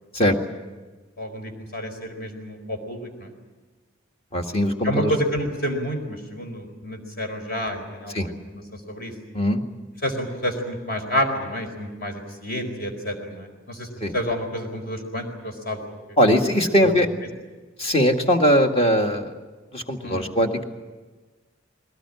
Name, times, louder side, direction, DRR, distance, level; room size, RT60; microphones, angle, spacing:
voice 1, 1.2-3.3 4.8-8.3 8.9-9.1 9.4-9.5 10.0-13.9 14.1-15.8 16.8-16.9 20.0-20.3, equal, 50° left, 4 dB, 4.4 m, -29 dB
voice 2, 4.3-5.1 8.1-8.3 9.3-9.6 14.0-14.1 16.2-17.1 17.8-19.3 19.7-20.6, equal, 30° left, 4 dB, 1.9 m, -20 dB
22.0 x 19.0 x 9.9 m, 1.3 s
head